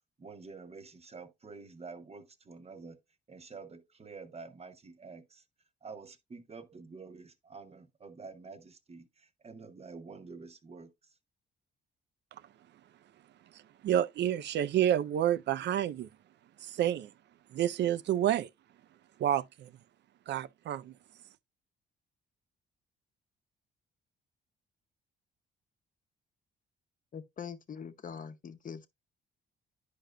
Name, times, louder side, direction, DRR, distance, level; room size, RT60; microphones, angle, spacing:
voice 1, 0.2-3.0 3.3-5.4 5.8-11.1, right 4 dB, 30° right, 1.0 m, -48 dB
voice 2, 13.8-16.1 16.6-17.1 17.5-18.5 19.2-19.7 20.3-20.9, right 11 dB, 60° right, 0.5 m, -29 dB
voice 3, 27.1-28.9, left 7 dB, 45° left, 0.9 m, -43 dB
10.5 x 5.1 x 2.2 m
cardioid pair, 90°, 20 cm